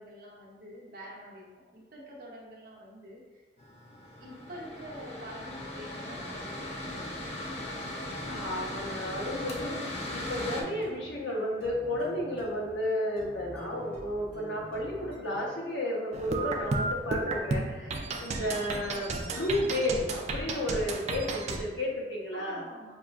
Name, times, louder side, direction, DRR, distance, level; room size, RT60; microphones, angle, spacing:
voice 1, 0.0-3.4 4.2-7.1 17.8-18.6 22.3-22.9, equal, 55° right, -4 dB, 0.9 m, -47 dB
Mechanical fan, 3.6-10.6, left 1 dB, 35° left, 0.5 m, -38 dB
voice 2, 8.3-22.7, left 1 dB, 85° left, -3 dB, 0.9 m, -32 dB
sound 1, 9.3-15.7, right 1 dB, 5° left, 1.2 m, -48 dB
sound 2, 16.1-21.6, right 2 dB, 35° right, 0.3 m, -33 dB
5.6 x 2.4 x 2.4 m, 1.4 s
head